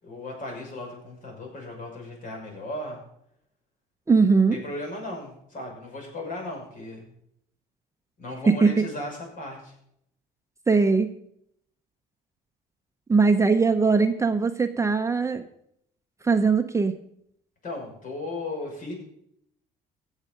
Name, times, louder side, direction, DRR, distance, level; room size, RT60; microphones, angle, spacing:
voice 1, 0.0-3.0 4.5-7.1 8.2-9.7 17.6-18.9, left 2 dB, 50° left, 1 dB, 6.0 m, -36 dB
voice 2, 4.1-4.6 8.5-8.8 10.7-11.1 13.1-15.4 16.2-16.9, right 4 dB, 15° right, 7 dB, 0.8 m, -20 dB
17.0 x 7.4 x 5.3 m, 0.73 s
cardioid pair, 110°, 17 cm